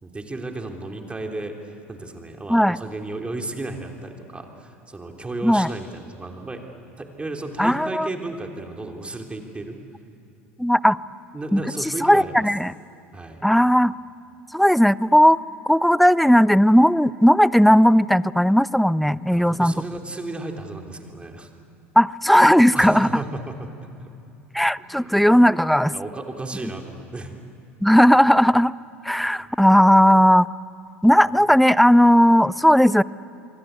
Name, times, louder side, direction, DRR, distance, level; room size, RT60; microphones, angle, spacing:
voice 1, 0.0-6.6 7.0-9.8 11.3-12.3 13.1-13.4 19.3-21.5 22.7-23.7 24.0-24.1 24.9-25.3 25.9-27.3, right 2 dB, 15° right, 3 dB, 3.3 m, -34 dB
voice 2, 7.6-8.1 10.6-11.0 11.5-12.7 13.4-13.9 14.5-15.4 15.7-19.7 22.0-23.2 24.5-25.9 27.8-28.7 29.0-30.5 31.0-33.0, equal, ahead, 21 dB, 0.5 m, -16 dB
27.5 x 24.0 x 8.3 m, 2.9 s
hypercardioid pair, 70°, 7 cm